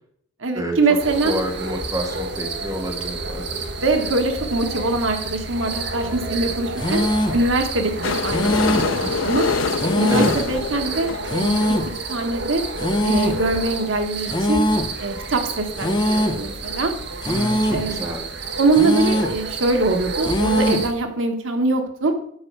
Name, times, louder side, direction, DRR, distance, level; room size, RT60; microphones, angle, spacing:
voice 1, 0.4-1.3 3.8-7.0 7.3-9.4 10.0-11.8 12.1-12.6 13.0-14.6 15.0-16.9 17.7-18.1 18.6-22.1, right 2 dB, 90° right, 5 dB, 1.3 m, -23 dB
sound 1, 1.0-20.9, right 3 dB, 60° right, 1.1 m, -30 dB
voice 2, 1.2-3.6 8.8-9.1 10.1-10.3 17.3-18.3, equal, 20° right, 0 dB, 2.2 m, -28 dB
sound 2, 6.8-7.5 8.3-9.0 9.8-10.5 11.3-12.0 12.8-13.5 14.3-15.0 15.8-16.5 17.2-17.9 18.7-19.4 20.2-20.9, equal, 25° left, 0.7 m, -22 dB
sound 3, 8.0-11.9 12.6-12.7 12.8-12.9 13.1-13.2 13.6-13.7, left 4 dB, 80° left, 0.6 m, -25 dB
8.7 x 5.6 x 6.6 m, 0.71 s
head